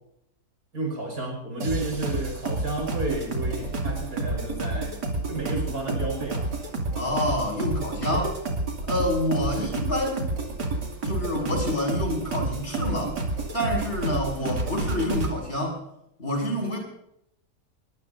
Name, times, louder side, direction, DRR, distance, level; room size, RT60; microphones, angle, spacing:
voice 1, 0.7-5.0 5.3-6.5 9.6-9.7 14.4-14.6, right 2 dB, 65° right, 2 dB, 6.3 m, -32 dB
sound 1, 1.6-15.3, right 2 dB, 90° right, 3.4 m, -30 dB
voice 2, 6.9-8.4 8.9-10.3 11.0-13.2 13.5-15.8 16.2-16.8, left 1 dB, 40° left, -1 dB, 6.5 m, -27 dB
23.0 x 23.0 x 2.7 m, 0.79 s
omnidirectional pair, 1.7 m